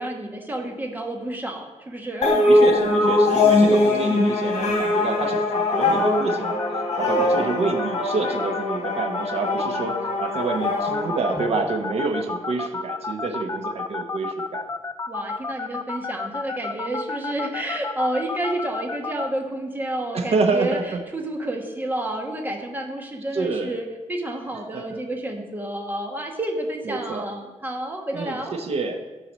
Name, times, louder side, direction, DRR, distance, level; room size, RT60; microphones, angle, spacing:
voice 1, 0.0-2.4 7.0-7.3 11.3-11.4 15.1-20.8 21.1-28.5, right 1 dB, 15° right, 2 dB, 1.4 m, -30 dB
sound 1, 2.2-12.0, left 2 dB, 65° left, 3.5 m, -22 dB
voice 2, 2.5-14.6 20.1-21.0 23.3-23.7 24.7-25.0 26.8-27.2 28.1-29.0, right 3 dB, 55° right, 4 dB, 1.2 m, -28 dB
sound 2, 5.5-19.3, left 4 dB, 25° left, 0.4 m, -30 dB
13.0 x 4.8 x 7.4 m, 1.2 s
wide cardioid pair, 165°, 12 cm